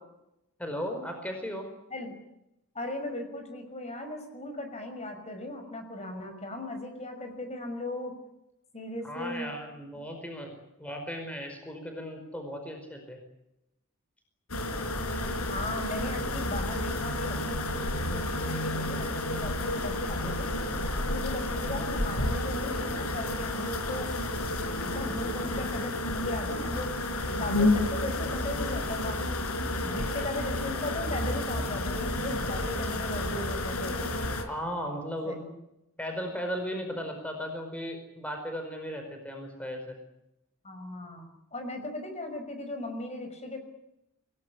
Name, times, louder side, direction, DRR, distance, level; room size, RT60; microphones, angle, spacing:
voice 1, 0.6-1.7 9.0-13.2 34.5-35.4 36.0-39.9, equal, 5° left, 4 dB, 4.9 m, -36 dB
voice 2, 2.7-8.2 8.7-9.5 9.9-10.0 15.5-20.5 21.1-24.1 24.8-26.9 27.3-29.3 29.8-34.0 35.2-35.5 40.6-43.6, left 2 dB, 30° left, 7 dB, 5.6 m, -37 dB
sound 1, 14.5-34.4, left 1 dB, 85° left, 4.4 m, -31 dB
27.5 x 19.0 x 10.0 m, 0.87 s
head